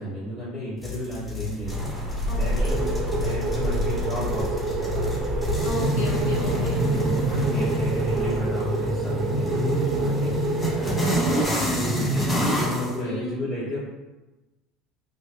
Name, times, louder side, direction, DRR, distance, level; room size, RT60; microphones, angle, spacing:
voice 1, 0.0-1.9 2.4-5.3 6.9-13.8, left 1 dB, 35° left, -14 dB, 1.5 m, -33 dB
sound 1, 0.8-12.9, equal, 20° left, 0.6 m, -27 dB
sound 2, 1.7-8.4, equal, ahead, 1.5 m, -32 dB
voice 2, 2.2-2.8 5.6-7.3 13.0-13.4, left 1 dB, 75° left, -6 dB, 0.9 m, -35 dB
sound 3, 2.6-11.4, right 5 dB, 45° right, 0.3 m, -30 dB
3.1 x 2.1 x 2.3 m, 1.1 s
figure-of-eight pair, 70°, 0 cm